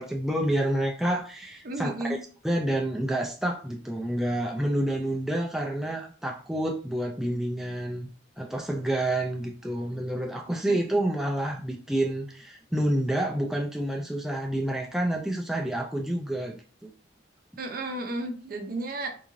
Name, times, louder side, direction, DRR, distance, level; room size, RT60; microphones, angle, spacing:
voice 1, 0.0-1.9 2.4-8.1 8.4-16.9, right 1 dB, ahead, 0 dB, 0.3 m, -28 dB
voice 2, 1.6-2.2 10.6-10.8 17.6-19.1, right 2 dB, 50° right, 5 dB, 0.6 m, -33 dB
3.6 x 2.5 x 3.0 m, 0.39 s
head